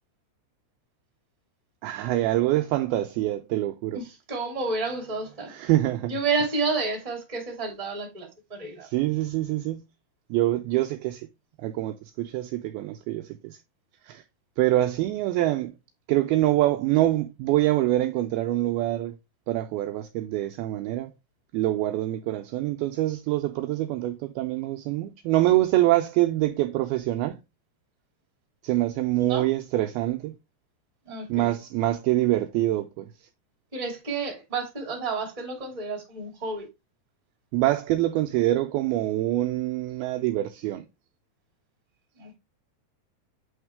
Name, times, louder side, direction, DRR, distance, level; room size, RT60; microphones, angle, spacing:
voice 1, 1.8-4.0 5.5-6.2 8.8-9.8 10.3-11.3 11.6-13.6 14.0-14.2 14.6-15.7 16.1-19.2 19.5-21.1 21.5-27.4 28.6-30.4 31.3-33.1 37.5-40.8, right 15 dB, 90° right, 2.1 m, -25 dB
voice 2, 3.9-5.5 6.1-8.9 29.2-29.4 31.0-31.5 33.7-36.7 42.2-42.4, right 4 dB, 15° right, 1.5 m, -30 dB
8.7 x 3.6 x 3.4 m
omnidirectional pair, 5.0 m